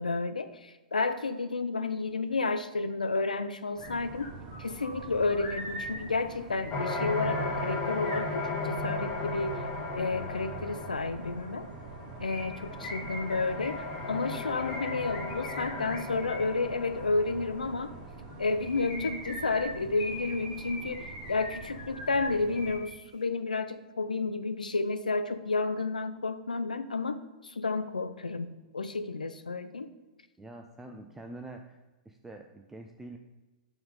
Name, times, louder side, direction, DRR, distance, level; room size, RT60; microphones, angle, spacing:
voice 1, 0.0-4.3 4.6-9.5 10.0-11.7 12.2-17.9 18.4-28.5 28.7-29.9, left 3 dB, 80° left, 9 dB, 0.5 m, -31 dB
sound 1, 3.8-3.9 4.2-9.0 12.2-16.5 18.3-22.9 23.2-23.3, left 1 dB, 55° left, 2.2 m, -42 dB
sound 2, 3.8-22.8, right 4 dB, 40° right, 1.0 m, -46 dB
sound 3, 6.7-18.2, left 2 dB, 30° left, 1.2 m, -36 dB
voice 2, 12.7-13.1 30.4-31.8 32.1-33.2, right 2 dB, 10° right, 4 dB, 0.5 m, -46 dB
5.8 x 3.9 x 5.1 m, 1.2 s
figure-of-eight pair, 105°, 4 cm